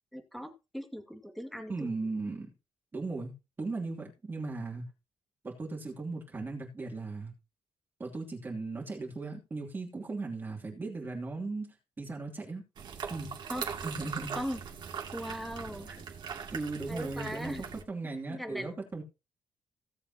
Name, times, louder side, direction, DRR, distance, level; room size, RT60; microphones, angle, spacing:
voice 1, 0.1-2.0 13.5-13.7 14.3-14.6 15.1-16.0 16.9-17.6 18.3-18.7, equal, ahead, 2.1 m, -39 dB
voice 2, 1.7-2.5 2.9-3.3 3.6-4.9 5.4-7.3 8.0-12.6 13.1-13.3 13.8-14.4 16.5-19.0, right 3 dB, 25° right, 2.9 m, -37 dB
sound 1, 12.8-17.8, right 7 dB, 55° right, 2.6 m, -40 dB
17.0 x 7.6 x 2.9 m
cardioid pair, 155°, 9 cm